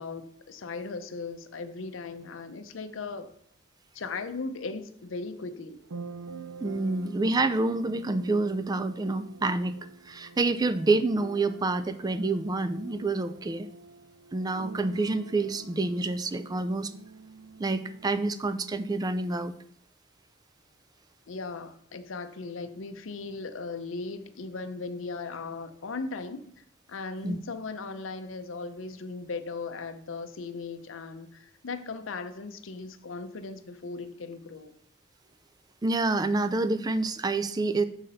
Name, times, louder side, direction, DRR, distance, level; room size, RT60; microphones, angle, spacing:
voice 1, 0.0-3.3 3.9-5.8 21.3-26.5 26.9-34.8, left 4 dB, 75° left, 0.6 m, -37 dB
sound 1, 5.8-18.4, right 4 dB, 90° right, 0.5 m, -46 dB
voice 2, 6.6-9.7 10.1-13.7 14.3-16.9 17.6-19.5 27.2-27.4 35.8-37.8, right 3 dB, 20° right, 0.3 m, -27 dB
6.4 x 5.8 x 4.0 m
head